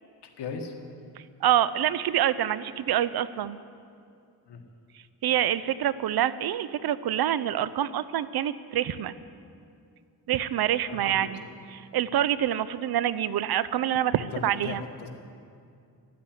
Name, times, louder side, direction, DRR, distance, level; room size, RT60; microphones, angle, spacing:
voice 1, 0.2-0.7 4.5-4.6 10.9-11.4 14.0-15.1, left 5 dB, 80° left, 4 dB, 1.7 m, -38 dB
voice 2, 1.4-3.6 5.2-9.1 10.3-11.4 11.8-14.8, right 11 dB, 65° right, 16 dB, 0.6 m, -26 dB
13.5 x 8.5 x 9.4 m, 2.4 s
cardioid pair, 85°, 40 cm